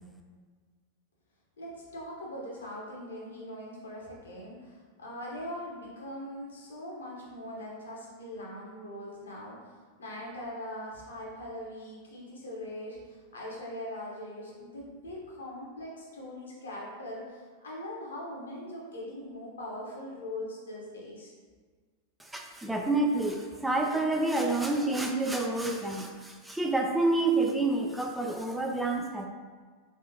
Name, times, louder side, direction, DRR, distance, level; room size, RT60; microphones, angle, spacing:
voice 1, 1.6-9.6 10.0-21.3, left 1 dB, 70° left, -4 dB, 1.0 m, -41 dB
voice 2, 22.2-29.3, right 2 dB, 5° right, 2 dB, 0.3 m, -28 dB
3.4 x 3.4 x 2.8 m, 1.5 s
figure-of-eight pair, 90°, 0 cm